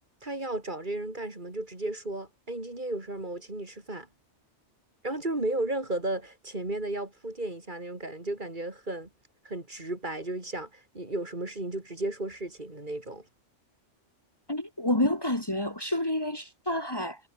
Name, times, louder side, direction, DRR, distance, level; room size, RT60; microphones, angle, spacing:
voice 1, 0.2-4.1 5.0-9.1 9.4-13.3, right 2 dB, 40° right, 3.6 m, -34 dB
voice 2, 14.5-17.2, left 1 dB, 20° left, 2.2 m, -29 dB
omnidirectional pair, 1.2 m